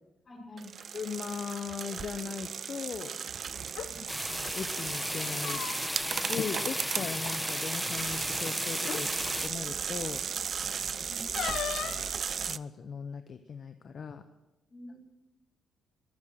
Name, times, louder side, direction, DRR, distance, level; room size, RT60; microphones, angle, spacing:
voice 1, 0.2-0.7 3.7-4.0 10.7-11.2 14.7-15.0, left 1 dB, 35° left, 1 dB, 5.4 m, -48 dB
sound 1, 0.6-12.6, right 7 dB, 50° right, 0.4 m, -36 dB
voice 2, 0.9-3.1 4.3-5.6 6.1-9.1 9.4-10.2 11.4-12.1 12.4-14.2, left 6 dB, 50° left, 9 dB, 0.8 m, -39 dB
sound 2, 3.6-3.9 5.1-6.0 6.3-6.5 6.9-7.1 8.1-8.2 8.8-9.1 11.3-12.1, left 9 dB, 75° left, 0.9 m, -36 dB
sound 3, 4.1-9.5, equal, ahead, 1.1 m, -34 dB
22.0 x 7.4 x 6.4 m, 1.0 s
cardioid pair, 90°, 0 cm